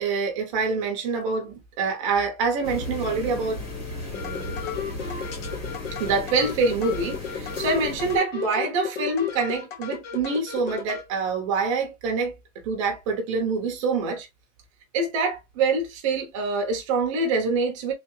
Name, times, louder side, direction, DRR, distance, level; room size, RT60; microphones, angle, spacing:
voice 1, 0.0-3.6 4.1-4.6 6.0-12.3 12.6-14.3 14.9-17.9, right 4 dB, 20° right, 0.6 m, -25 dB
sound 1, 2.6-8.2, left 2 dB, 25° left, 1.5 m, -35 dB
sound 2, 4.1-11.0, left 7 dB, 55° left, 1.4 m, -34 dB
3.5 x 3.3 x 3.1 m
supercardioid pair, 180°, 44 cm